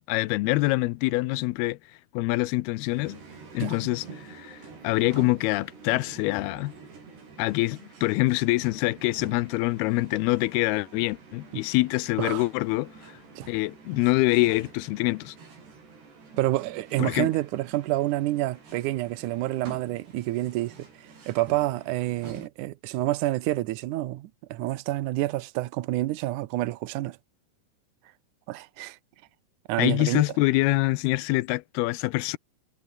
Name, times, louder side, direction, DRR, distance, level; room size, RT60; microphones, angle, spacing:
voice 1, 0.0-1.8 2.1-3.2 3.5-4.6 4.8-6.7 7.4-12.9 13.5-15.4 17.0-17.3 29.8-32.4, left 20 dB, 80° left, 2.6 m, -25 dB
sound 1, 2.9-22.5, right 4 dB, 90° right, 9.5 m, -47 dB
voice 2, 16.4-20.9 21.3-27.2 28.5-29.0 29.7-30.2, right 16 dB, 75° right, 1.9 m, -28 dB
omnidirectional pair, 4.7 m